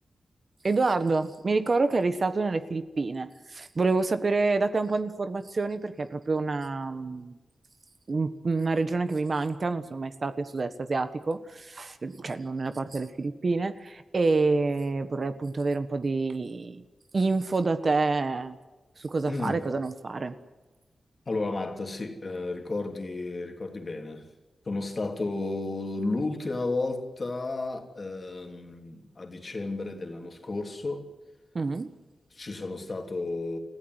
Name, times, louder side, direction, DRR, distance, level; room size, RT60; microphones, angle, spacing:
voice 1, 0.6-7.4 8.1-16.8 17.1-18.6 19.0-20.3 31.5-31.9, right 3 dB, 40° right, 1.3 m, -27 dB
voice 2, 19.3-19.6 21.2-24.3 24.6-31.1 32.3-33.6, left 2 dB, 35° left, 3.2 m, -33 dB
29.5 x 15.5 x 8.0 m
wide cardioid pair, 130°, 0 cm